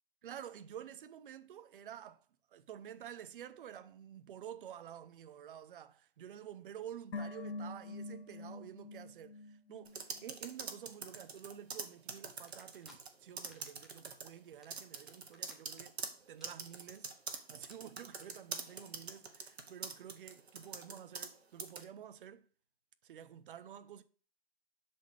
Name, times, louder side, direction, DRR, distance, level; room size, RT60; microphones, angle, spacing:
voice 1, 0.2-2.2 2.5-16.0 16.3-17.1 17.5-22.4 23.0-24.0, right 9 dB, 55° right, 0.7 m, -50 dB
sound 1, 7.1-10.4 10.7-10.8, left 3 dB, 85° left, 1.3 m, -45 dB
sound 2, 9.9-13.1 13.4-14.3 14.7-21.3 21.6-21.8, right 5 dB, 80° right, 1.2 m, -44 dB
sound 3, 12.5-13.0 13.3-14.1 14.4-16.1 16.3-16.6 16.9-17.0 17.3-17.4 17.6-17.7 18.1-18.2, equal, ahead, 0.6 m, -61 dB
7.2 x 4.3 x 4.7 m
hypercardioid pair, 140°, 31 cm